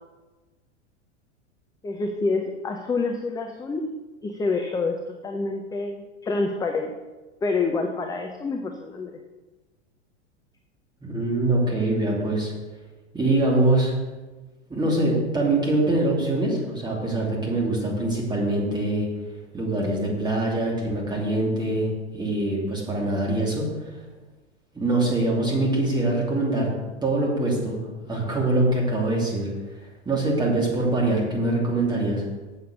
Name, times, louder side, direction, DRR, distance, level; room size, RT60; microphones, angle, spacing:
voice 1, 1.8-3.9 4.2-6.9 7.4-9.1, left 3 dB, 10° left, 3 dB, 0.7 m, -27 dB
voice 2, 11.0-12.5 13.1-13.9 14.7-19.1 19.5-24.0 24.7-26.7 27.0-27.8 28.1-29.5 30.0-32.2, right 2 dB, 10° right, -2 dB, 2.9 m, -23 dB
7.5 x 7.2 x 6.7 m, 1.2 s
figure-of-eight pair, 90°, 36 cm